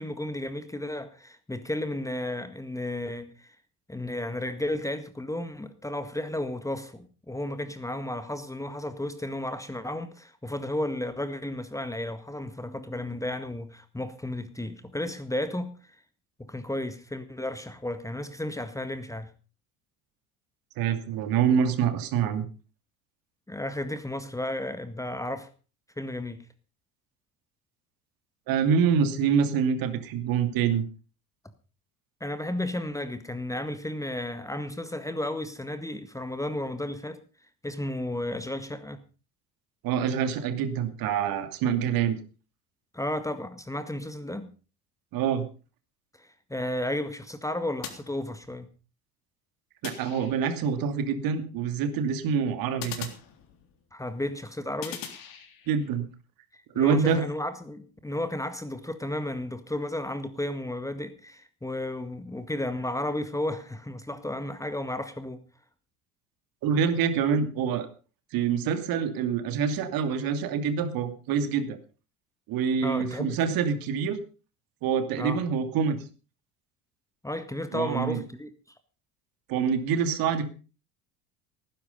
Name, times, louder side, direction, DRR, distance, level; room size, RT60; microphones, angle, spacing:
voice 1, 0.0-3.6 3.9-15.7 16.4-19.3 23.5-25.5 26.0-26.5 32.2-37.2 37.6-39.0 42.9-44.5 46.2-48.7 53.9-55.0 56.7-65.4 72.8-73.4 75.1-75.4 77.2-78.5, left 1 dB, 5° left, 1.8 m, -33 dB
voice 2, 20.8-22.4 28.5-30.9 39.8-42.2 45.1-45.4 49.8-53.1 55.7-56.1 56.7-57.2 66.6-67.9 68.3-71.8 72.5-74.2 74.8-76.0 77.7-78.2 79.5-80.5, right 7 dB, 50° right, 2.7 m, -26 dB
sound 1, 47.8-48.8 49.8-50.7 52.8-53.9 54.8-55.9, left 8 dB, 50° left, 3.5 m, -42 dB
18.0 x 10.5 x 5.4 m
figure-of-eight pair, 65°, 44 cm